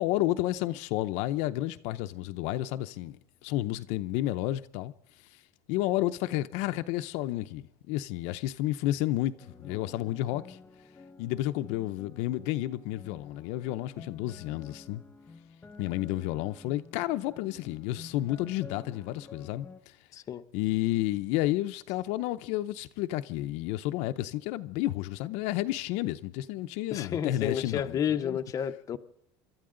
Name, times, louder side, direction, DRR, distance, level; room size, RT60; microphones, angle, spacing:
voice 1, 0.0-4.9 5.7-10.6 11.2-15.0 15.8-19.7 20.5-28.4, left 15 dB, 65° left, 0.7 m, -31 dB
sound 1, 9.4-19.8, left 4 dB, 15° left, 1.3 m, -51 dB
voice 2, 20.1-20.4 26.9-29.0, left 8 dB, 30° left, 0.7 m, -31 dB
27.0 x 13.0 x 3.8 m
cardioid pair, 160°, 12 cm